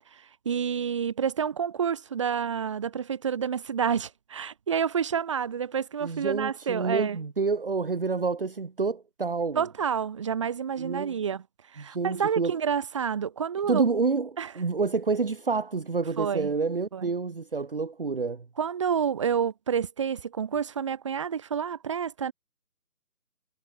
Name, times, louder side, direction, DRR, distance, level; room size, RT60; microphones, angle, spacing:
voice 1, 0.1-7.2 9.5-11.4 11.7-13.8 14.4-14.5 16.2-16.5 16.9-17.1 18.6-22.3, right 7 dB, 20° right, 2.6 m, -29 dB
voice 2, 6.0-9.7 10.8-11.1 11.8-12.6 13.7-18.5, right 4 dB, 35° right, 1.8 m, -28 dB
figure-of-eight pair, 160°, 47 cm